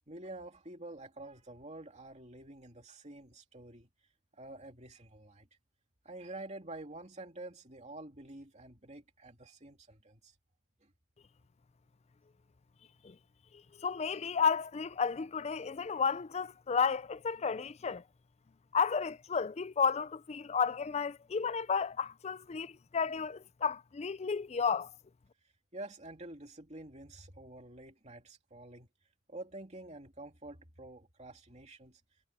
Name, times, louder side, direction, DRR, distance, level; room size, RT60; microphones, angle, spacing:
voice 1, 0.1-3.9 4.3-5.5 6.0-10.4 10.8-10.9 25.4-28.9 29.3-32.0, right 2 dB, 35° right, 2.8 m, -48 dB
voice 2, 13.8-18.0 18.7-24.9, left 6 dB, 30° left, 0.4 m, -32 dB
head